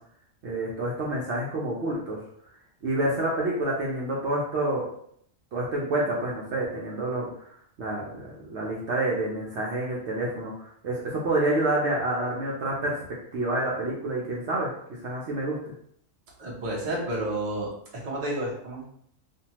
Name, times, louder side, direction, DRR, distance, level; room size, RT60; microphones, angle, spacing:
voice 1, 0.4-2.2 2.8-4.9 5.5-7.3 7.8-8.2 8.5-10.5 10.8-12.9 13.3-14.7 15.0-15.7, right 1 dB, 65° right, -4 dB, 0.8 m, -28 dB
voice 2, 16.4-17.7 18.0-18.8, right 1 dB, 35° right, -4 dB, 0.7 m, -30 dB
2.6 x 2.2 x 2.8 m, 0.68 s
omnidirectional pair, 1.4 m